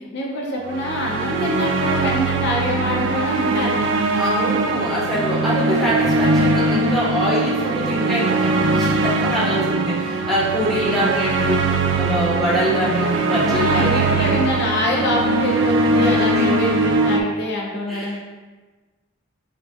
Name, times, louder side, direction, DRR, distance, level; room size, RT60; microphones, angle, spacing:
voice 1, 0.1-3.9 13.5-18.2, left 1 dB, 55° left, -1 dB, 0.5 m, -24 dB
sound 1, 0.7-17.2, right 2 dB, 65° right, 0.3 m, -21 dB
voice 2, 4.1-14.4 16.3-16.5 17.9-18.2, equal, ahead, -8 dB, 0.9 m, -24 dB
6.4 x 2.2 x 2.7 m, 1.3 s
head